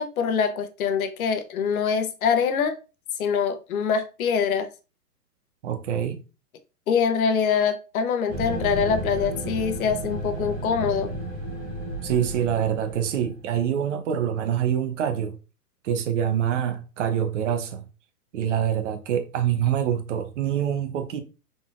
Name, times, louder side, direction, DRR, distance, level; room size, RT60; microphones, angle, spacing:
voice 1, 0.0-2.8 3.2-4.7 6.9-11.1, left 6 dB, 65° left, 0.9 m, -24 dB
voice 2, 5.6-6.2 12.0-15.4 15.8-17.8 18.3-21.2, right 9 dB, 50° right, 0.8 m, -25 dB
sound 1, 8.3-13.5, right 1 dB, 10° right, 0.5 m, -33 dB
4.0 x 3.9 x 2.4 m
hypercardioid pair, 145°, 47 cm